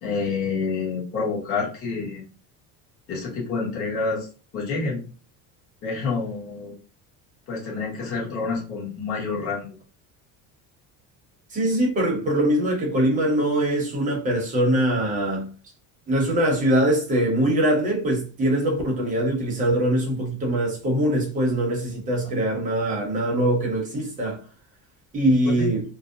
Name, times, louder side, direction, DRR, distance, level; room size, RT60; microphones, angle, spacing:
voice 1, 0.0-2.2 3.1-4.3 4.5-5.0 5.8-6.7 7.5-9.7 25.2-25.7, left 4 dB, 35° left, 1.0 m, -28 dB
voice 2, 11.5-15.5 16.1-24.4 25.1-25.8, right 1 dB, 20° right, 0.7 m, -22 dB
2.5 x 2.0 x 2.6 m
cardioid pair, 175°, 37 cm